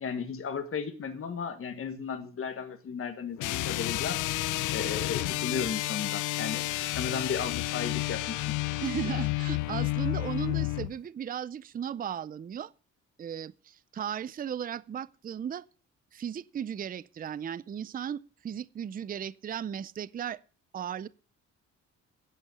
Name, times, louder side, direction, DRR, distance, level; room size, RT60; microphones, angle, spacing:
voice 1, 0.0-4.2 4.7-6.7 6.9-8.5, left 6 dB, 45° left, 1.4 m, -35 dB
sound 1, 3.4-10.9, left 17 dB, 80° left, 0.5 m, -31 dB
voice 2, 8.8-12.7 13.2-15.7 16.1-20.4 20.7-21.1, right 9 dB, 30° right, 0.5 m, -36 dB
11.5 x 8.0 x 6.8 m
cardioid pair, 90°, 30 cm